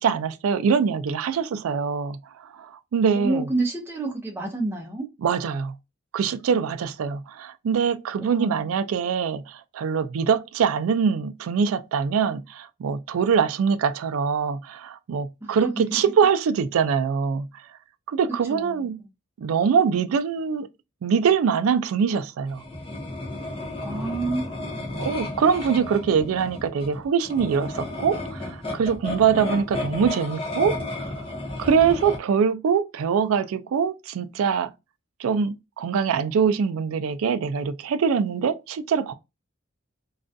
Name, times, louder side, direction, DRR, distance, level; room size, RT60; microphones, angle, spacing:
voice 1, 0.0-3.5 5.2-5.8 6.1-17.5 18.1-19.0 19.4-20.7 21.0-22.6 24.9-31.1 31.6-34.7 35.2-39.1, right 6 dB, 85° right, 0.3 m, -23 dB
voice 2, 3.2-5.1 8.2-8.7 15.4-16.0 18.5-18.9 23.8-25.1, right 2 dB, 10° right, 0.5 m, -29 dB
sound 1, 22.5-32.2, left 2 dB, 25° left, 0.7 m, -33 dB
2.4 x 2.2 x 2.5 m
head